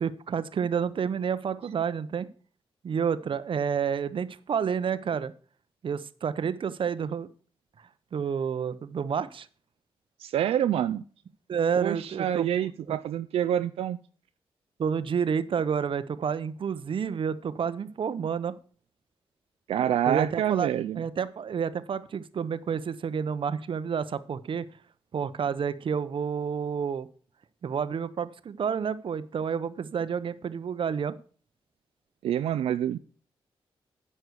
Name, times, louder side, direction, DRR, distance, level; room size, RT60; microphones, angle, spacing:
voice 1, 0.0-2.3 2.8-5.3 5.8-7.3 7.8-9.5 11.5-12.5 12.9-13.0 14.8-18.6 20.1-20.7 21.0-24.7 25.1-27.1 27.6-31.2, right 7 dB, 60° right, 0.7 m, -29 dB
voice 2, 10.2-11.0 11.8-14.0 19.7-21.0 32.2-33.0, right 10 dB, 90° right, 0.4 m, -27 dB
9.3 x 5.6 x 6.6 m
cardioid pair, 75°, 10 cm